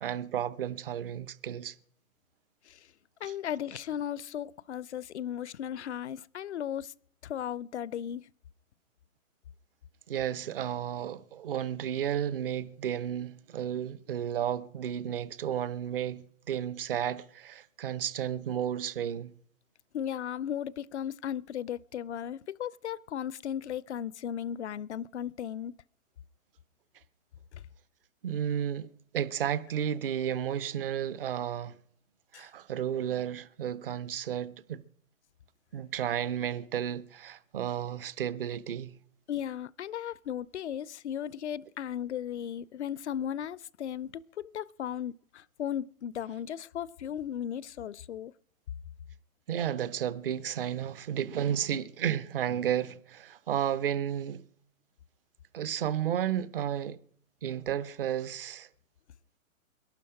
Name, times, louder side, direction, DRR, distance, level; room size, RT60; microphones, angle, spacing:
voice 1, 0.0-1.7 3.3-3.4 10.1-19.3 28.2-31.7 32.3-34.8 35.7-38.9 49.5-54.4 55.5-57.0 57.4-58.7, right 9 dB, 40° right, 0.7 m, -32 dB
voice 2, 3.2-6.9 7.2-8.3 19.9-25.7 32.3-32.5 39.3-48.3, left 9 dB, 55° left, 0.5 m, -36 dB
21.5 x 12.0 x 4.9 m
figure-of-eight pair, 130°, 43 cm